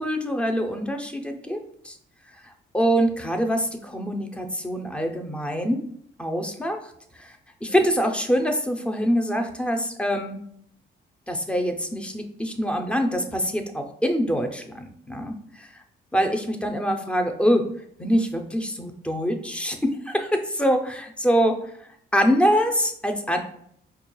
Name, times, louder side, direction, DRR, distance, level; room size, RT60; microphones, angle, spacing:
voice 1, 0.0-1.6 1.8-1.9 2.7-5.8 6.2-6.8 7.2-10.4 11.3-15.3 16.1-17.6 18.0-21.6 22.1-23.4, equal, 5° left, 5 dB, 0.5 m, -24 dB
4.3 x 2.3 x 3.0 m, 0.67 s
cardioid pair, 90°, 20 cm